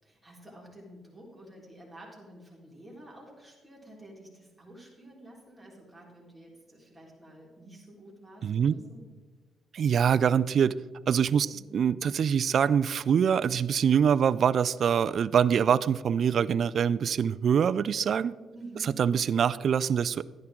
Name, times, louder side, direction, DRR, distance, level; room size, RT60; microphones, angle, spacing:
voice 1, 0.0-9.0 11.5-11.8 18.5-18.9, right 1 dB, 5° right, -4 dB, 4.3 m, -50 dB
voice 2, 8.4-8.7 9.7-10.8 11.1-18.3 18.8-20.2, right 7 dB, 55° right, 16 dB, 0.4 m, -24 dB
13.0 x 10.5 x 3.8 m, 1.3 s
cardioid pair, 90°, 0 cm